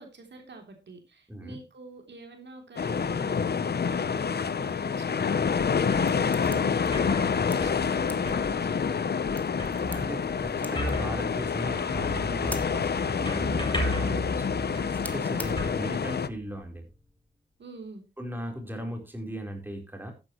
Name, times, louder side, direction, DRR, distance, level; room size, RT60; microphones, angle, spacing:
voice 1, 0.0-5.6 5.9-9.2 14.0-14.3 15.4-15.7 17.6-18.0, right 3 dB, 75° right, 4 dB, 3.3 m, -46 dB
sound 1, 2.8-16.3, left 6 dB, 60° left, 0.9 m, -28 dB
sound 2, 5.4-16.0, left 1 dB, 10° left, 2.3 m, -48 dB
sound 3, 5.5-16.6, left 1 dB, 25° left, 7.8 m, -36 dB
voice 2, 9.9-16.9 18.2-20.1, equal, 10° right, 3 dB, 4.1 m, -38 dB
13.0 x 10.5 x 3.1 m, 0.28 s
cardioid pair, 70°, 19 cm